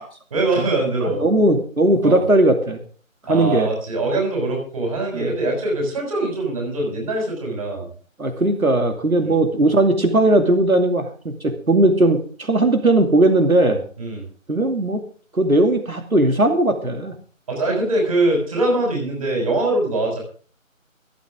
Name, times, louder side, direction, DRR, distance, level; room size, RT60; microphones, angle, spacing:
voice 1, 0.3-1.2 2.0-2.2 3.3-7.9 9.2-9.4 14.0-14.2 17.5-20.2, right 2 dB, 25° right, 0 dB, 6.2 m, -22 dB
voice 2, 1.0-2.8 3.3-3.7 5.1-5.3 8.2-13.8 14.5-15.0 15.3-17.1, right 1 dB, 90° right, 6 dB, 2.6 m, -18 dB
25.5 x 8.6 x 3.6 m, 0.41 s
figure-of-eight pair, 165°, 41 cm